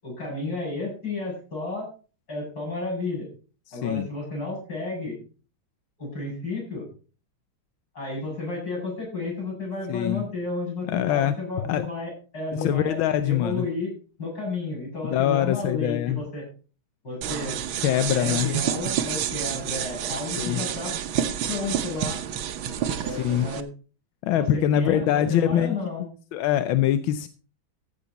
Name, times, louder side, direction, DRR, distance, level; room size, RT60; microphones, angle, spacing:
voice 1, 0.0-1.9 2.3-3.3 3.7-5.2 6.0-6.9 7.9-13.0 13.2-13.9 14.2-16.4 17.0-17.6 18.1-20.9 21.5-22.2 22.8-23.6 24.3-26.0, left 3 dB, 50° left, -2 dB, 8.3 m, -32 dB
voice 2, 3.7-4.1 9.9-10.2 10.9-11.3 11.7-11.9 12.5-13.7 15.0-16.2 17.8-18.6 20.4-20.6 23.1-23.5 24.2-25.7 26.3-27.3, left 11 dB, 90° left, 11 dB, 1.5 m, -23 dB
sound 1, 17.2-23.6, right 9 dB, 85° right, 1.7 m, -29 dB
15.0 x 8.1 x 4.1 m, 0.37 s
omnidirectional pair, 2.1 m